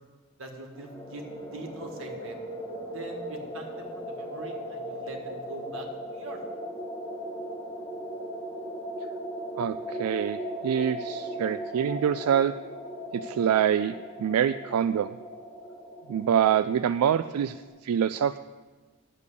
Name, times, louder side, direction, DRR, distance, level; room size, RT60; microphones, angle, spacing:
voice 1, 0.4-2.4 2.9-6.4, right 2 dB, 60° right, 2 dB, 1.7 m, -42 dB
sound 1, 0.8-17.7, equal, 20° left, 1.4 m, -38 dB
voice 2, 9.6-12.5 13.1-13.9 14.2-15.1 16.1-18.4, right 9 dB, 85° right, 12 dB, 0.3 m, -25 dB
10.0 x 6.8 x 8.3 m, 1.3 s
head